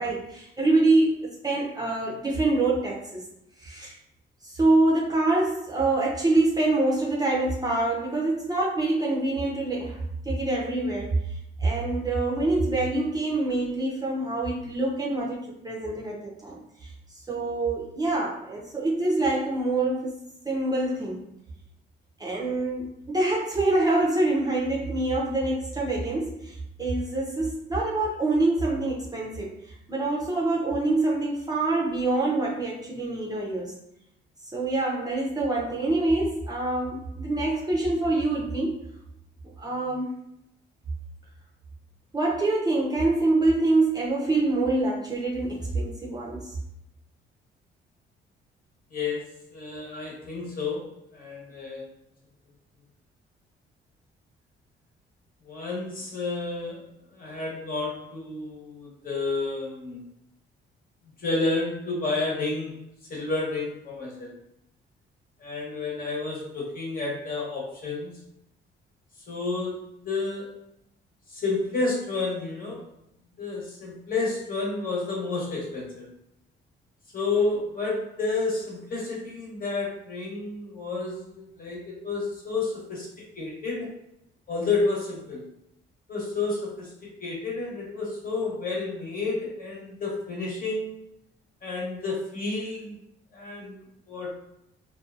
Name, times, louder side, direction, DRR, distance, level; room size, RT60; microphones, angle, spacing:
voice 1, 0.0-3.3 3.6-3.9 4.4-11.2 11.6-16.9 17.3-20.2 20.4-21.3 22.2-29.6 29.9-33.8 34.5-38.7 39.6-40.2 42.1-46.5, right 2 dB, 20° right, -4 dB, 0.6 m, -25 dB
voice 2, 48.9-51.9 55.4-56.9 57.1-60.0 61.2-62.8 63.1-64.3 65.4-68.1 69.3-70.5 71.3-72.8 73.4-76.1 77.1-83.9 84.5-85.5 86.1-86.9 87.2-91.0 91.6-92.9 93.3-93.8 94.1-94.4, left 3 dB, 45° left, -3 dB, 1.1 m, -30 dB
2.6 x 2.3 x 2.4 m, 0.79 s
cardioid pair, 90°, 20 cm